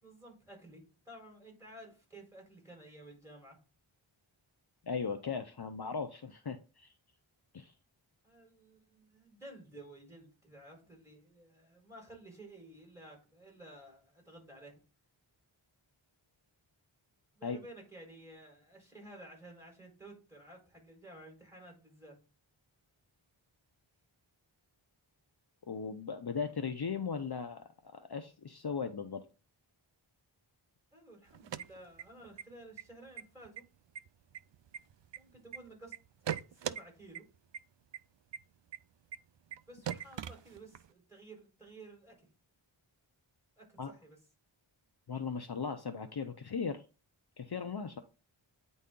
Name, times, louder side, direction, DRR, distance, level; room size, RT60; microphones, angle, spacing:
voice 1, 0.0-3.6 8.2-14.8 17.3-22.2 30.9-33.6 35.1-36.0 36.2-37.3 39.7-42.3 43.6-44.2, right 1 dB, 5° right, 0 dB, 4.4 m, -53 dB
voice 2, 4.8-6.9 7.5-7.7 17.4-17.6 25.7-29.2 43.8-43.9 45.1-46.8 47.4-48.0, left 5 dB, 50° left, 7 dB, 0.7 m, -38 dB
sound 1, 31.3-32.4 32.7-32.8 33.2-33.6 33.9-35.6 35.9-36.8 37.1-37.2 37.5-37.6 37.9-38.0 38.3-38.4 38.7-38.8 39.1-39.2 39.5-39.6 39.8-40.9, right 9 dB, 60° right, 0.5 m, -39 dB
9.3 x 4.2 x 3.7 m, 0.33 s
wide cardioid pair, 50°, 49 cm